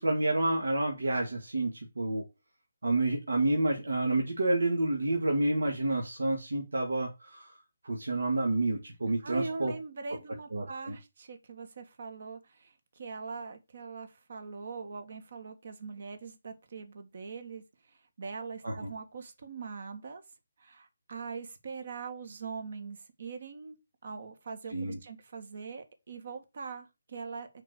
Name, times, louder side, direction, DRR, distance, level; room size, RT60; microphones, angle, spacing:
voice 1, 0.0-2.2 2.8-7.6 7.8-9.7 10.5-11.0 18.6-18.9 24.7-25.0, right 2 dB, 75° right, 2.1 m, -29 dB
voice 2, 9.2-20.2 20.6-23.8 24.0-27.5, right 4 dB, 55° right, 1.9 m, -42 dB
5.8 x 4.8 x 6.4 m
figure-of-eight pair, 150°, 0 cm